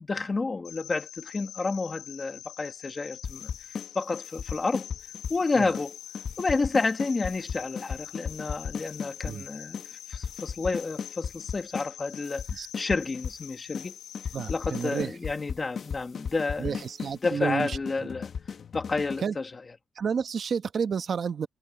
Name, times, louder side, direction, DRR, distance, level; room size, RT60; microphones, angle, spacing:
voice 1, 0.0-4.9 5.3-6.0 6.4-14.0 14.5-16.8 17.2-18.3 18.7-19.5, left 3 dB, 20° left, 2.1 m, -30 dB
Cricket, 0.6-15.0, left 11 dB, 70° left, 6.1 m, -45 dB
sound 1, 3.2-5.4 5.7-5.9 6.1-9.4 9.7-9.9 10.1-11.9 12.1-13.4 13.7-13.9 14.1-19.2, left 6 dB, 40° left, 1.2 m, -35 dB
voice 2, 14.3-15.1 16.6-17.8 19.2-19.3 20.0-21.5, right 6 dB, 40° right, 1.1 m, -30 dB
cardioid pair, 155°, 0 cm